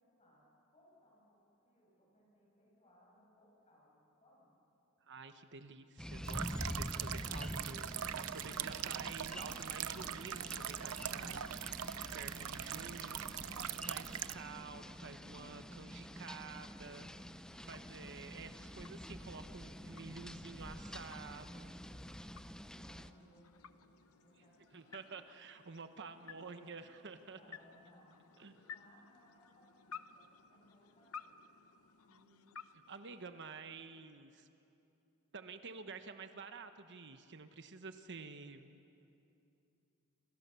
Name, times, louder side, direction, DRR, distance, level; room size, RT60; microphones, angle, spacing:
voice 1, 0.0-4.5 12.1-13.5 22.8-25.2 26.2-26.9 27.3-31.4, left 1 dB, 30° left, -4 dB, 8.0 m, -67 dB
voice 2, 5.1-11.4 11.8-13.2 13.9-17.1 17.7-21.7 24.7-27.6 28.4-28.5 32.1-34.5 35.3-38.7, right 4 dB, 55° right, 8 dB, 1.1 m, -50 dB
sound 1, 6.0-23.1, equal, 5° left, 0.6 m, -47 dB
sound 2, 6.3-14.3, right 10 dB, 75° right, 0.6 m, -42 dB
sound 3, 16.1-33.8, left 6 dB, 85° left, 0.9 m, -57 dB
28.5 x 28.0 x 7.0 m, 2.8 s
head